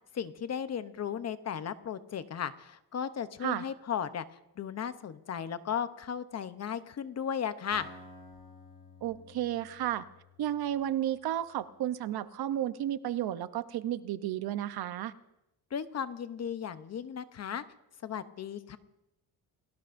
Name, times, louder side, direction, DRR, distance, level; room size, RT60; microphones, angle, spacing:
voice 1, 0.1-4.3 4.6-7.9 15.7-17.6 18.0-18.8, left 8 dB, 40° left, 11 dB, 0.8 m, -35 dB
Acoustic guitar, 7.7-11.6, left 3 dB, 60° left, 7.0 m, -53 dB
voice 2, 9.0-10.0 10.4-15.1, right 12 dB, 65° right, 12 dB, 0.8 m, -32 dB
28.5 x 19.0 x 2.6 m, 0.93 s
cardioid pair, 155°, 40 cm